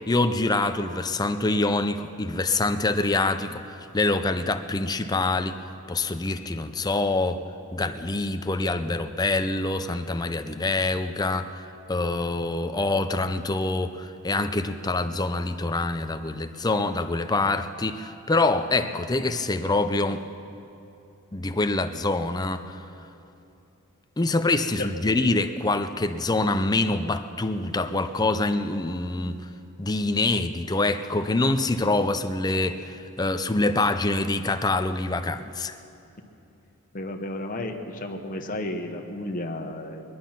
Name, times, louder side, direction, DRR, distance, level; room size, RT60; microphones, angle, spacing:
voice 1, 0.1-5.6 5.9-7.4 7.7-20.2 21.3-22.8 24.2-29.4 29.8-35.8, left 2 dB, 20° left, 9 dB, 0.5 m, -25 dB
voice 2, 36.9-40.0, left 1 dB, 40° left, 3 dB, 1.1 m, -32 dB
21.0 x 11.0 x 5.8 m, 2.8 s
head